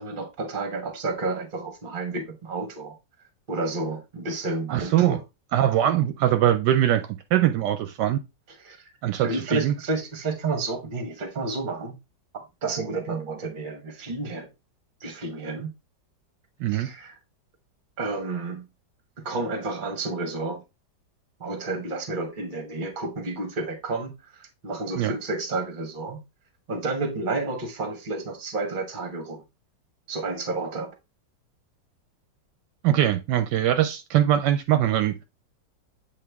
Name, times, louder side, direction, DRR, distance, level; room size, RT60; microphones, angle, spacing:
voice 1, 0.0-2.9 3.5-5.2 8.6-8.9 9.2-11.9 12.6-14.5 15.0-15.7 16.7-17.2 18.0-18.7 19.2-20.6 21.4-26.2 26.7-29.4 30.1-30.9, right 3 dB, 30° right, 1.1 m, -31 dB
voice 2, 4.7-5.2 5.5-8.2 9.0-9.7 16.6-16.9 25.0-25.1 32.8-35.2, right 12 dB, 75° right, 1.1 m, -22 dB
7.8 x 3.6 x 3.4 m
omnidirectional pair, 1.9 m